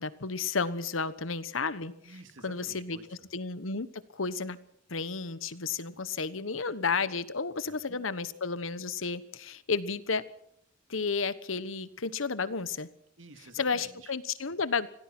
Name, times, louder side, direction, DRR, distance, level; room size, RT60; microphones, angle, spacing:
voice 1, 0.0-1.9 2.4-3.0 3.3-4.6 4.9-10.2 10.9-12.9 13.5-14.9, left 4 dB, 90° left, 15 dB, 1.2 m, -32 dB
voice 2, 2.0-3.3 7.7-8.0 9.0-9.1 13.2-14.1, right 2 dB, 70° right, 7 dB, 2.5 m, -51 dB
25.5 x 17.5 x 6.1 m, 0.73 s
head